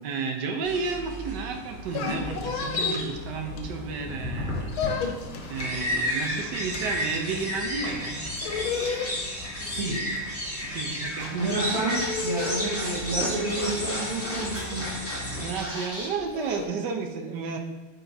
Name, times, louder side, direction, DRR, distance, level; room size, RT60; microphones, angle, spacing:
voice 1, 0.0-4.7 5.5-8.2 10.6-11.7 15.2-17.6, right 5 dB, 65° right, 4 dB, 1.3 m, -32 dB
sound 1, 0.6-15.5, left 1 dB, 5° left, 2.4 m, -33 dB
sound 2, 1.7-4.1 4.4-16.7, left 5 dB, 70° left, 1.7 m, -34 dB
voice 2, 9.6-10.0 11.2-15.0, right 2 dB, 90° right, -6 dB, 2.6 m, -30 dB
Scratching (performance technique), 11.2-16.1, equal, 10° right, 1.7 m, -37 dB
9.2 x 4.4 x 4.1 m, 1.1 s
omnidirectional pair, 2.4 m